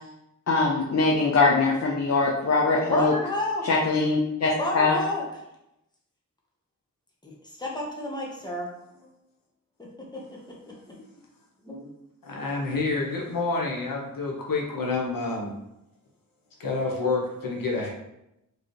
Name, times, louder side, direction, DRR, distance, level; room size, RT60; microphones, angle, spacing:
voice 1, 0.5-3.1 3.7-5.0, left 3 dB, 50° left, -3 dB, 0.7 m, -22 dB
voice 2, 2.9-3.7 4.6-5.2 7.2-9.1 9.8-10.9 11.6-11.9, left 1 dB, 10° left, -3 dB, 1.1 m, -32 dB
voice 3, 12.2-15.5 16.6-17.9, left 3 dB, 80° left, -1 dB, 1.0 m, -28 dB
4.8 x 3.1 x 3.1 m, 0.85 s
wide cardioid pair, 90°, 34 cm